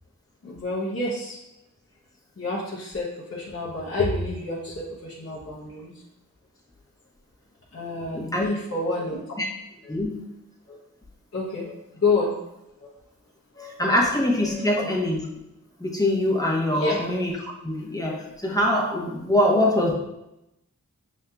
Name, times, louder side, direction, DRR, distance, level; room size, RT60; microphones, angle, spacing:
voice 1, 0.4-1.4 2.4-5.9 7.7-9.2 10.7-10.8 11.3-12.3 12.8-12.9 13.5-13.9 14.4-14.8 16.7-17.0, left 3 dB, 45° left, -6 dB, 0.8 m, -28 dB
voice 2, 8.1-8.5 9.4-9.5 9.9-10.3 13.6-15.3 15.8-17.3 17.6-19.9, left 1 dB, 10° left, -3 dB, 1.0 m, -23 dB
6.2 x 2.8 x 2.3 m, 0.90 s
wide cardioid pair, 50°, 33 cm